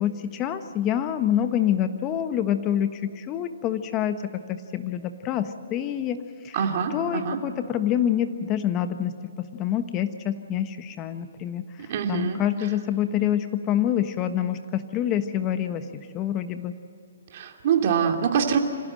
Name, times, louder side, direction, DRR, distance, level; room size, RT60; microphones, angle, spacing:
voice 1, 0.0-6.2 6.4-6.6 6.9-9.1 9.5-11.6 12.1-16.7, left 10 dB, 25° left, 9 dB, 1.2 m, -26 dB
voice 2, 6.5-7.4 11.9-12.7 17.3-18.6, right 7 dB, 45° right, 3 dB, 2.8 m, -25 dB
26.0 x 16.5 x 7.7 m, 2.5 s
hypercardioid pair, 155°, 0 cm